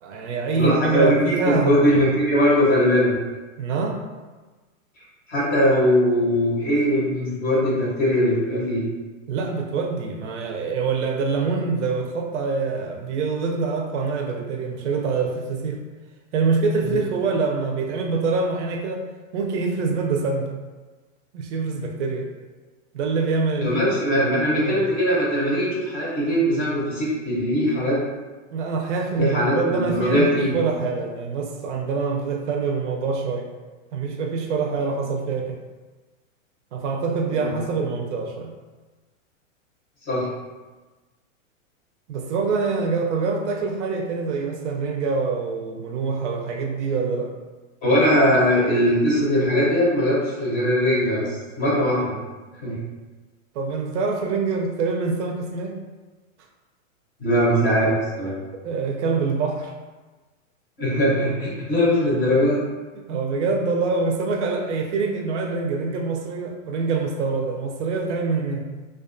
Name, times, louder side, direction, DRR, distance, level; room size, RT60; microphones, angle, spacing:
voice 1, 0.0-2.0 3.6-4.0 9.3-15.8 16.3-19.0 19.3-20.5 21.3-22.3 22.9-24.9 28.5-33.5 33.9-35.6 36.7-38.5 42.1-47.3 53.5-55.7 58.6-59.7 63.1-68.6, right 4 dB, 60° right, 2 dB, 0.5 m, -25 dB
voice 2, 0.5-3.2 5.3-8.8 16.8-17.0 23.6-28.0 29.2-30.5 37.4-37.5 40.0-40.3 47.8-51.3 51.6-52.2 52.6-52.8 57.2-58.3 60.8-62.6, equal, 20° left, -6 dB, 0.6 m, -20 dB
2.3 x 2.3 x 2.4 m, 1.3 s
hypercardioid pair, 145°, 39 cm